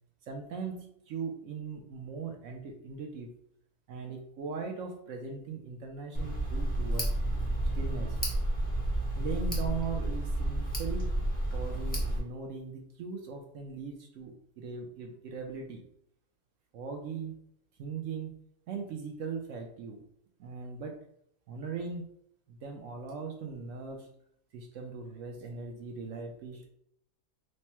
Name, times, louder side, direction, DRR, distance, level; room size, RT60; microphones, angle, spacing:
voice 1, 0.3-3.3 3.9-7.1 7.7-8.2 9.1-11.2 11.5-15.8 16.7-17.4 17.8-18.3 18.7-20.0 20.4-21.0 21.5-22.0 22.5-24.1 24.5-26.7, right 5 dB, 65° right, 3 dB, 0.8 m, -39 dB
Tick, 6.1-12.2, right 1 dB, 10° left, 0.6 m, -31 dB
3.2 x 2.1 x 4.2 m, 0.71 s
omnidirectional pair, 1.6 m